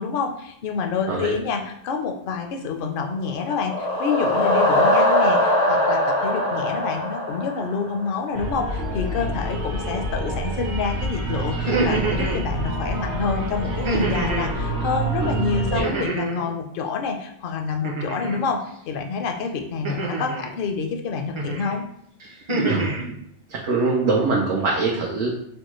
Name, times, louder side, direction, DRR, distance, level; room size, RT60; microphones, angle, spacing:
voice 1, 0.0-18.6 18.9-21.8, left 5 dB, 60° left, 4 dB, 0.6 m, -27 dB
sound 1, 3.3-8.2, left 1 dB, 80° left, 1.1 m, -21 dB
sound 2, 8.3-15.8, right 1 dB, 65° right, 1.2 m, -27 dB
sound 3, 11.5-12.4 13.8-14.5 15.8-16.5 17.8-18.4 19.8-20.5 21.3-21.7 22.2-23.0, right 2 dB, 40° right, 0.5 m, -26 dB
voice 2, 15.2-15.9 22.5-23.2 23.5-25.3, right 3 dB, 85° right, -4 dB, 1.0 m, -24 dB
4.5 x 2.1 x 3.0 m, 0.71 s
omnidirectional pair, 1.2 m